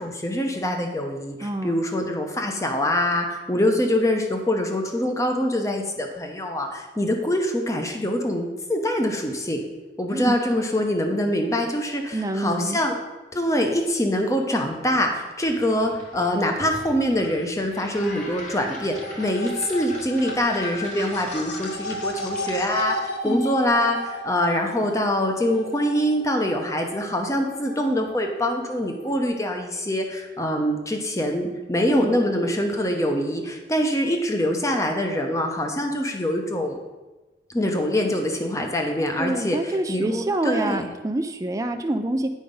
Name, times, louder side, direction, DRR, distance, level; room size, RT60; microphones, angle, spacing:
voice 1, 0.0-9.6 10.0-13.0 13.3-36.8 37.5-40.9, left 1 dB, 20° left, 3 dB, 0.9 m, -24 dB
voice 2, 1.4-1.8 10.1-10.4 12.1-12.8 23.2-23.5 31.9-32.1 39.2-42.3, right 1 dB, 20° right, 5 dB, 0.4 m, -26 dB
sound 1, 15.4-23.2, left 1 dB, 40° left, 1.6 m, -41 dB
sound 2, 18.0-29.3, left 1 dB, 75° left, 0.9 m, -35 dB
8.5 x 5.0 x 5.4 m, 1.2 s
head